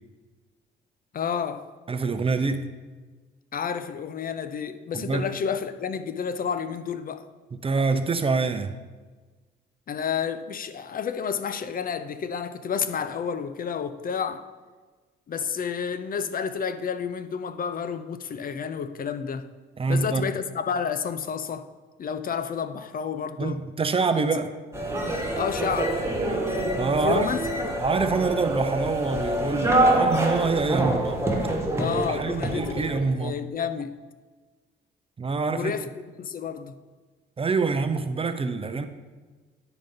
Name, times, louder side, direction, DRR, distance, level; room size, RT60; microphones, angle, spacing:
voice 1, 1.1-1.7 3.5-7.2 9.9-14.5 15.3-19.5 19.9-21.7 22.0-23.6 25.4-26.0 27.0-27.8 31.8-33.9 35.5-35.9 36.2-36.7, left 7 dB, 45° left, 0.5 m, -30 dB
voice 2, 1.9-2.7 4.9-5.3 7.5-8.8 19.8-20.3 23.4-24.5 26.8-27.3 27.8-31.2 32.1-33.3 35.2-35.8 37.4-38.9, right 4 dB, 30° right, 0.6 m, -26 dB
sound 1, 24.7-33.0, right 1 dB, 15° right, 1.5 m, -26 dB
10.5 x 4.0 x 5.2 m
cardioid pair, 90°, 20 cm